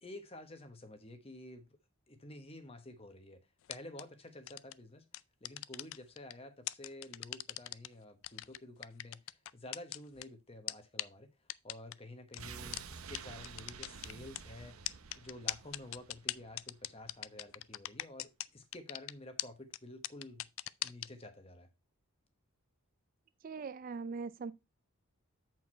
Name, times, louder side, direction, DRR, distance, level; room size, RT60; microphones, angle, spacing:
voice 1, 0.0-1.7 2.1-5.0 5.4-11.3 11.6-14.8 15.2-20.5 20.8-21.7, left 1 dB, 25° left, 1.1 m, -51 dB
sound 1, 3.6-4.0 4.5-4.7 5.1-6.3 6.7-7.9 8.2-10.2 10.7-10.8 11.0-11.1 11.5-11.9 12.3-12.4 12.7-12.8 13.1-13.2 13.4-14.4 14.9-18.5 18.7-19.1 19.4-19.5 19.7-19.8 20.0-21.1, left 16 dB, 65° left, 0.3 m, -39 dB
sound 2, 12.4-17.3 17.6-17.7, right 6 dB, 80° right, 0.7 m, -50 dB
voice 2, 23.4-24.5, right 5 dB, 40° right, 0.3 m, -41 dB
8.0 x 4.6 x 4.4 m
head